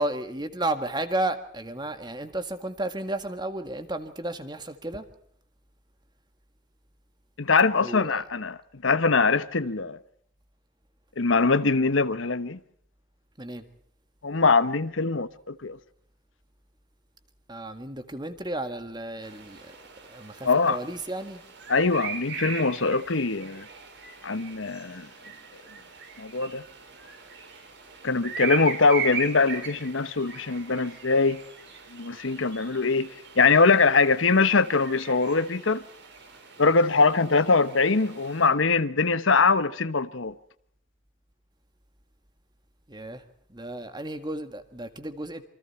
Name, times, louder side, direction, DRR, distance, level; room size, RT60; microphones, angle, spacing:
voice 1, 0.0-5.0 7.8-8.2 13.4-13.6 17.5-19.6 20.1-21.4 42.9-43.2 43.5-45.4, right 1 dB, 20° right, 1.9 m, -33 dB
voice 2, 7.4-10.0 11.2-12.6 14.2-15.8 20.4-20.8 21.7-23.7 24.2-25.1 26.2-26.6 28.0-31.4 31.9-33.1 33.4-35.8 36.6-40.3, left 4 dB, 70° left, 1.0 m, -22 dB
sound 1, 19.2-38.5, right 6 dB, 55° right, 4.8 m, -40 dB
27.5 x 25.0 x 4.4 m
head